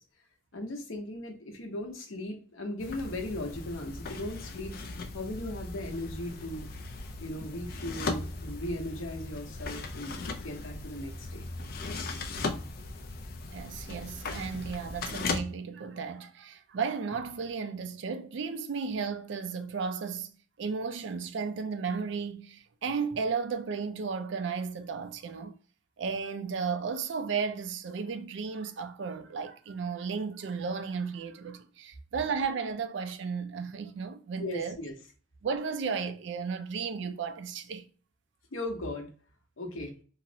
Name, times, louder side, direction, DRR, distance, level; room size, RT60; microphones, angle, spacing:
voice 1, 0.5-4.8 5.1-6.7 7.2-11.4 34.4-35.0 38.5-39.1 39.6-39.9, left 1 dB, 85° left, 0.9 m, -37 dB
sound 1, 2.8-15.4, left 3 dB, 45° left, 0.4 m, -38 dB
voice 2, 13.5-20.3 20.6-25.5 26.0-34.8 35.4-37.8, right 5 dB, 65° right, 0.4 m, -34 dB
3.9 x 2.0 x 2.6 m
head